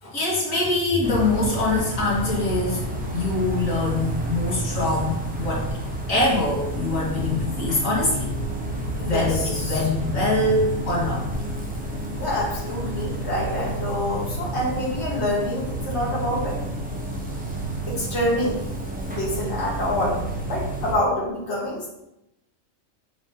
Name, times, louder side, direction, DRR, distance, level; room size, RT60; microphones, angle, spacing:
voice 1, 0.0-5.7 6.1-8.3 9.0-11.2, left 2 dB, 85° left, -5 dB, 2.3 m, -24 dB
sound 1, 1.0-20.9, right 1 dB, 5° right, 1.1 m, -30 dB
voice 2, 9.0-9.9 12.1-16.6 17.9-18.6 19.1-21.9, left 1 dB, 55° left, -5 dB, 2.2 m, -27 dB
7.1 x 5.5 x 3.9 m, 0.88 s
omnidirectional pair, 1.3 m